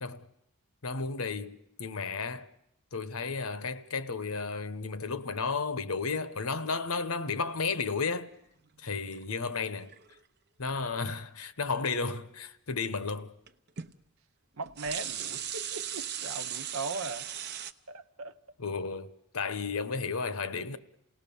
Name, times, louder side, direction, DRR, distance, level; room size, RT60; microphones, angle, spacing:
voice 1, 0.8-2.5 2.9-8.3 8.8-9.9 10.6-13.3 18.6-19.1 19.3-20.8, left 4 dB, 75° left, 1.1 m, -33 dB
sound 1, 9.1-10.2 11.9-12.1 13.5-13.6 13.8-13.9 14.6-17.7, right 9 dB, 50° right, 0.8 m, -38 dB
voice 2, 14.6-17.3 17.9-18.3, right 3 dB, 70° right, 1.1 m, -38 dB
28.0 x 18.0 x 7.1 m
head